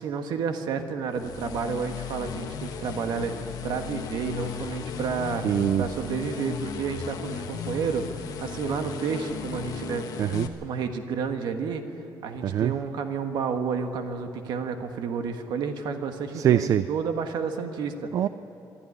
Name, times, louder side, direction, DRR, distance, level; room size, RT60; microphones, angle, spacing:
voice 1, 0.0-5.5 5.8-10.1 10.6-11.8 12.2-18.1, right 6 dB, 75° right, 6 dB, 1.6 m, -30 dB
sound 1, 1.1-10.5, left 7 dB, 55° left, 1.5 m, -36 dB
voice 2, 5.4-5.8 10.2-10.5 12.4-12.8 16.3-16.9 18.1-18.3, right 10 dB, 45° right, 13 dB, 0.4 m, -23 dB
25.0 x 12.5 x 9.8 m, 2.8 s
cardioid pair, 180°, 7 cm